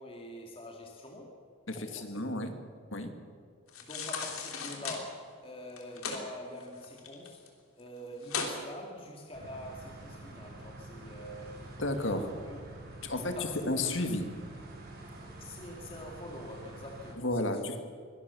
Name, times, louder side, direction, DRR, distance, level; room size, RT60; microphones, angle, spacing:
voice 1, 0.0-1.3 1.7-2.3 3.8-7.5 7.8-12.6 13.2-13.7 15.4-17.8, left 1 dB, 25° left, 0 dB, 2.3 m, -45 dB
voice 2, 1.7-2.5 2.9-3.1 11.8-12.2 13.0-14.3 17.2-17.8, left 2 dB, 60° left, 7 dB, 2.2 m, -32 dB
sound 1, 3.7-5.0 5.7-6.2 6.6-7.5 7.8-7.9 8.2-8.6 9.0-9.1, left 5 dB, 85° left, 3.3 m, -36 dB
sound 2, 9.3-17.1, right 2 dB, 45° right, 4.6 m, -47 dB
24.0 x 17.5 x 7.0 m, 2.3 s
head